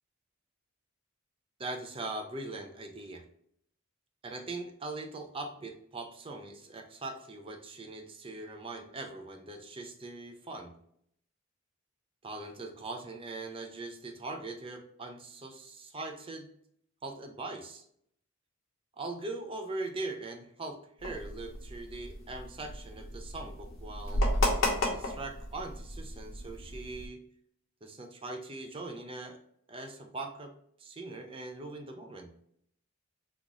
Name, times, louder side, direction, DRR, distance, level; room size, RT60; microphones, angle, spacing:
voice 1, 1.6-3.2 4.2-10.7 12.2-16.5 17.0-17.8 18.9-24.3 24.8-27.2 27.8-29.4 29.7-30.5 30.8-32.3, right 2 dB, 25° right, 4 dB, 0.5 m, -41 dB
sound 1, 21.0-27.1, left 1 dB, 75° left, 1.0 m, -33 dB
3.8 x 2.5 x 2.9 m, 0.68 s
head